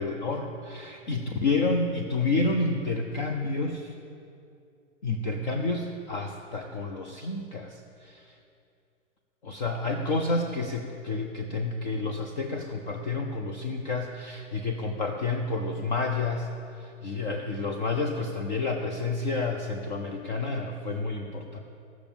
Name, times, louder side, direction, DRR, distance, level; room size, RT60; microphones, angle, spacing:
voice 1, 0.0-3.9 5.0-8.3 9.4-16.5 16.8-21.6, left 3 dB, 35° left, 3 dB, 0.7 m, -30 dB
15.5 x 6.2 x 7.1 m, 2.5 s
hypercardioid pair, 165°, 38 cm